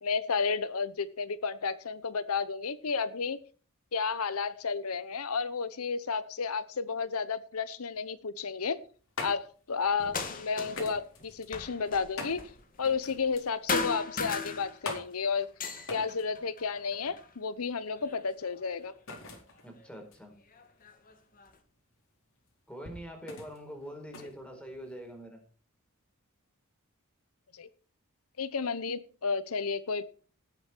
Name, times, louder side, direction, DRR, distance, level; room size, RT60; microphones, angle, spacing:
voice 1, 0.0-3.4 3.9-8.8 9.2-12.4 12.8-15.5 15.9-18.9 27.5-27.7 28.4-30.0, left 5 dB, 85° left, 15 dB, 0.9 m, -32 dB
sound 1, 8.6-25.2, left 2 dB, 65° left, 4.3 m, -46 dB
sound 2, 10.0-10.9 11.2-13.4 13.7-15.1 15.4-17.3 17.9-18.8 19.8-19.9 20.5-21.5, left 4 dB, 40° left, 2.2 m, -37 dB
voice 2, 19.6-20.3 22.7-25.4, equal, 5° left, 3 dB, 4.4 m, -44 dB
18.5 x 8.2 x 4.5 m, 0.39 s
head